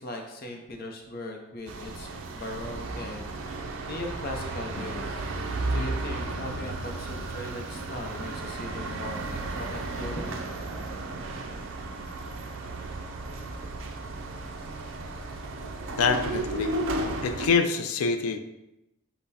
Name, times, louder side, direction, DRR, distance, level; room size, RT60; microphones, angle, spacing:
voice 1, 0.0-10.4, left 2 dB, 45° left, 2 dB, 0.6 m, -39 dB
sound 1, 1.7-17.5, right 2 dB, 65° right, 0.5 m, -34 dB
voice 2, 16.0-16.7 17.2-18.4, left 5 dB, 85° left, 8 dB, 0.4 m, -25 dB
5.5 x 2.1 x 4.1 m, 0.92 s
head